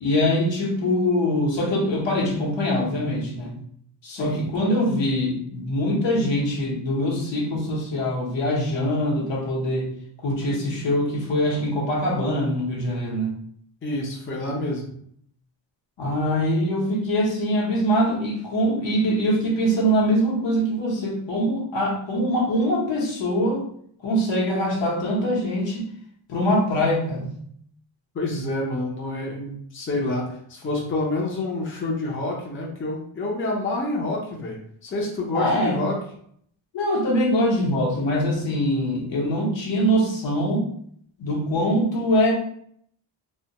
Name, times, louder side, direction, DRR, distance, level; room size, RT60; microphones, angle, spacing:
voice 1, 0.0-3.6 4.0-9.9 10.2-13.3 16.0-23.6 24.0-25.9 26.3-27.4 35.3-35.9 36.7-40.7 41.2-42.3, equal, 65° left, -2 dB, 0.9 m, -23 dB
voice 2, 4.1-4.4 13.8-14.9 28.1-34.6 34.8-35.9, left 2 dB, 25° left, -2 dB, 0.5 m, -28 dB
2.2 x 2.2 x 2.7 m, 0.64 s
cardioid pair, 100°, 48 cm